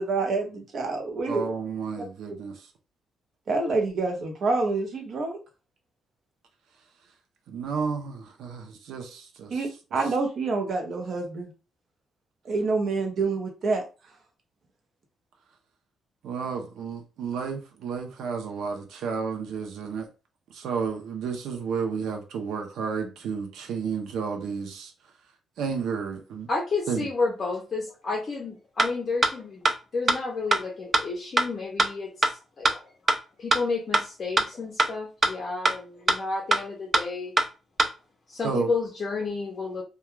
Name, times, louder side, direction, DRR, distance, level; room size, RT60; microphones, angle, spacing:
voice 1, 0.0-1.5 3.5-5.4 9.5-11.5 12.4-13.9, right 3 dB, 50° right, 0.7 m, -27 dB
voice 2, 1.3-2.7 7.5-9.6 16.2-20.1 20.5-24.9 25.6-26.5 26.9-27.1 38.4-38.7, right 5 dB, 85° right, 0.5 m, -32 dB
voice 3, 26.5-33.1 33.4-37.3 38.3-39.8, left 3 dB, 35° left, 0.5 m, -31 dB
sound 1, 28.8-28.9 29.2-29.3 29.6-29.7 30.1-30.2 30.5-30.6 30.9-31.0 31.4-31.5 31.8-31.9 32.2-32.3 32.6-32.7 33.1-33.2 33.5-33.6 33.9-34.0 34.4-34.5 34.8-34.9 35.2-35.3 35.6-35.7 36.1-36.2 36.5-36.6 36.9-37.0 37.4-37.5 37.8-37.9, right 2 dB, 25° right, 0.3 m, -20 dB
2.2 x 2.2 x 3.0 m
cardioid pair, 140°, 0 cm